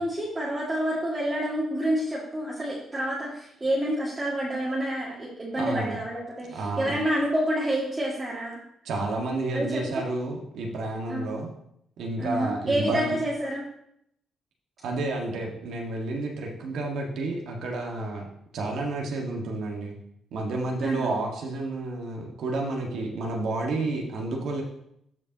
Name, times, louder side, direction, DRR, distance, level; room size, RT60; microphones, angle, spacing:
voice 1, 0.0-8.6 9.5-10.0 11.1-11.3 12.2-13.6 20.8-21.1, right 1 dB, 20° right, -6 dB, 2.1 m, -28 dB
voice 2, 5.6-6.0 6.4-7.0 8.9-11.5 12.0-13.2 14.8-18.3 18.5-20.0 20.3-24.6, right 2 dB, 75° right, 0 dB, 1.6 m, -30 dB
13.5 x 5.3 x 2.9 m, 0.74 s
cardioid pair, 90°, 0 cm